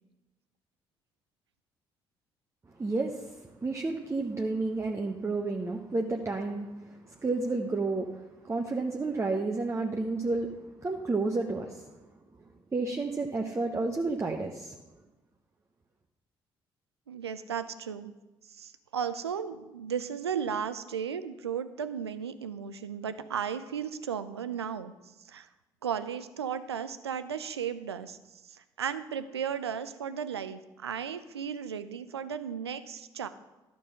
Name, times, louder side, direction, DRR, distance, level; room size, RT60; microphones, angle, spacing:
voice 1, 2.8-8.1 8.4-10.5 10.8-11.9 12.7-14.8, right 3 dB, 20° right, 2 dB, 1.0 m, -31 dB
voice 2, 17.1-18.1 18.5-24.9 25.2-25.5 25.8-28.2 28.4-33.3, right 7 dB, 90° right, 12 dB, 0.5 m, -35 dB
12.0 x 5.4 x 6.4 m, 1.1 s
figure-of-eight pair, 50°, 13 cm